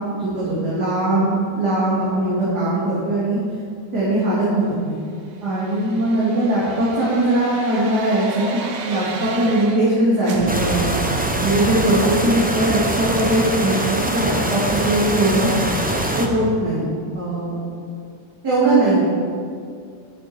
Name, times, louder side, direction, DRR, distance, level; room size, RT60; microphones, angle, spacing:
voice 1, 0.0-3.4 3.9-5.0 5.4-8.4 8.8-11.1 11.4-15.5 16.1-17.6 18.4-19.0, right 1 dB, 70° right, -9 dB, 3.1 m, -20 dB
sound 1, 5.2-10.0 10.2-15.1 15.5-15.6, right 4 dB, 85° right, 1.6 m, -33 dB
sound 2, 10.5-16.3, right 1 dB, 10° right, 0.4 m, -23 dB
11.5 x 10.0 x 4.4 m, 2.2 s
omnidirectional pair, 1.8 m